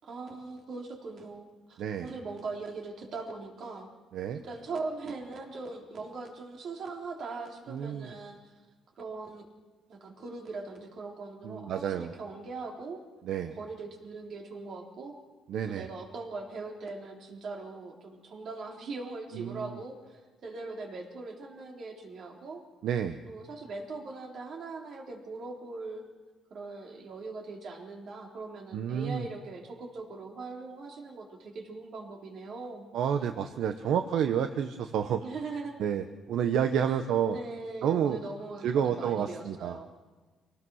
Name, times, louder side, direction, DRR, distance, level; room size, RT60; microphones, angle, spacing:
voice 1, 0.0-3.9 4.3-8.4 9.0-9.5 9.9-13.0 13.5-15.2 15.7-22.6 23.3-26.0 26.5-32.9 35.2-35.8 36.4-36.5 36.9-37.0 37.3-39.9, right 3 dB, 55° right, 1 dB, 3.6 m, -40 dB
voice 2, 1.8-2.1 4.1-4.4 7.7-8.1 11.4-12.1 13.2-13.6 15.5-15.9 19.3-19.8 22.8-23.2 28.7-29.3 32.9-35.2 35.8-37.4 37.8-38.2 38.6-39.8, right 8 dB, 75° right, 8 dB, 0.9 m, -29 dB
25.0 x 18.0 x 6.4 m, 1.4 s
cardioid pair, 135°, 0 cm